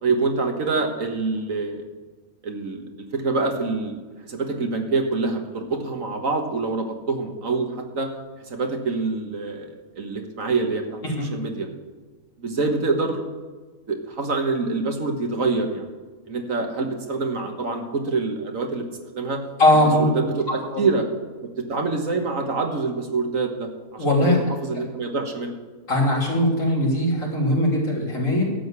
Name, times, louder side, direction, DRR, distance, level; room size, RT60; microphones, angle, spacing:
voice 1, 0.0-1.8 2.4-2.8 3.1-4.0 4.3-8.1 8.5-11.0 11.3-11.7 12.4-13.2 13.9-15.9 16.3-18.9 19.1-19.4 20.0-21.1 21.6-25.6, right 3 dB, 65° right, 4 dB, 1.8 m, -26 dB
voice 2, 19.6-20.1 24.0-24.4 25.9-28.4, left 1 dB, 60° left, -3 dB, 3.7 m, -20 dB
12.5 x 8.0 x 8.2 m, 1.3 s
omnidirectional pair, 1.5 m